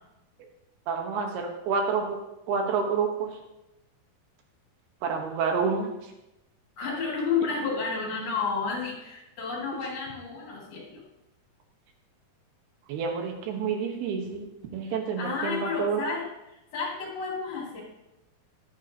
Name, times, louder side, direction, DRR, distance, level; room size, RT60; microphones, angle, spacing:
voice 1, 0.9-2.2 2.5-3.3 5.0-5.9 12.9-14.5 14.7-16.0, right 5 dB, 80° right, 3 dB, 3.3 m, -28 dB
voice 2, 6.8-11.0 15.2-17.8, left 5 dB, 60° left, -3 dB, 4.0 m, -31 dB
13.5 x 11.0 x 2.9 m, 0.94 s
omnidirectional pair, 4.6 m